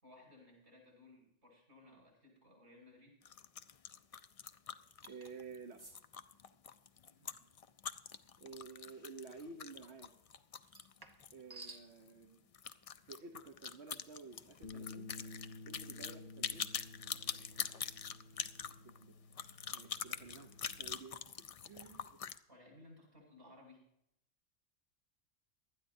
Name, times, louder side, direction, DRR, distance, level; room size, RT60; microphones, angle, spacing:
voice 1, 0.0-3.2 6.9-7.5 17.1-17.7 18.3-18.4 22.5-23.8, left 2 dB, 90° right, -3 dB, 6.7 m, -61 dB
sound 1, 3.2-11.4 11.7-11.8 12.1-12.2 12.5-22.4, left 7 dB, 65° left, 0.3 m, -44 dB
sound 2, 5.0-5.3 5.8-6.0 8.5-8.7 10.6-11.9, right 2 dB, 20° right, 1.2 m, -53 dB
voice 2, 5.0-5.8 8.4-10.1 11.3-12.5 13.1-16.7 18.8-19.2 19.7-22.2, right 4 dB, 60° right, 4 dB, 1.2 m, -52 dB
Bass guitar, 14.6-20.9, left 3 dB, 45° left, 1.0 m, -53 dB
19.0 x 12.5 x 2.7 m, 0.79 s
omnidirectional pair, 1.2 m